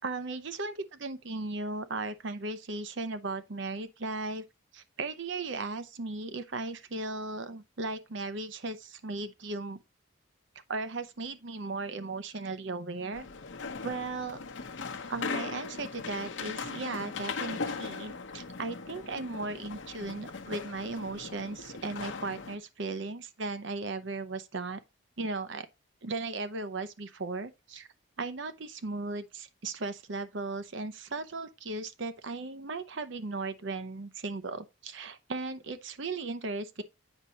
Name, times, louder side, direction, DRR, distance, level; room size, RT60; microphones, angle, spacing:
voice 1, 0.0-4.4 4.7-9.8 10.7-13.3 13.8-14.4 15.1-24.8 25.2-25.7 26.0-27.9 28.2-36.8, right 3 dB, 60° right, 0.7 m, -36 dB
sound 1, 13.1-22.6, left 4 dB, 60° left, 0.8 m, -39 dB
8.1 x 5.5 x 2.8 m
head